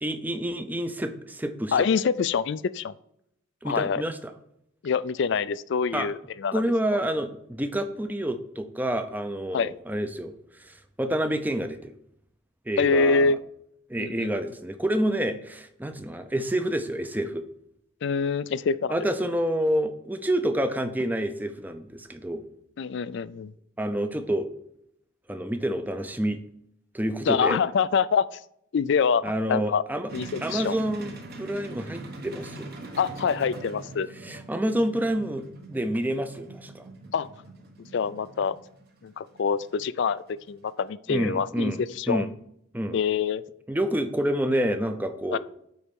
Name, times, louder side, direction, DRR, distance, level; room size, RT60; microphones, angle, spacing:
voice 1, 0.0-1.9 3.6-4.3 5.9-6.1 6.5-11.9 12.7-13.4 13.9-17.4 18.9-22.4 23.8-24.5 25.3-26.4 26.9-27.6 29.2-30.1 30.4-32.7 34.2-36.9 41.1-41.8 42.1-42.3 42.7-43.0 43.7-45.4, right 1 dB, 10° right, 9 dB, 0.5 m, -28 dB
voice 2, 1.7-2.9 3.6-4.0 4.8-6.6 6.9-7.0 9.5-9.7 12.8-13.4 14.0-14.3 18.0-19.1 22.8-23.5 27.3-28.3 28.7-29.8 30.1-30.8 33.0-34.1 37.1-37.3 37.9-38.6 39.0-42.3 42.9-43.4 45.3-45.4, left 5 dB, 55° left, 17 dB, 0.3 m, -25 dB
sound 1, 30.1-40.8, right 2 dB, 50° right, 1.1 m, -42 dB
9.3 x 4.2 x 5.2 m, 0.76 s
head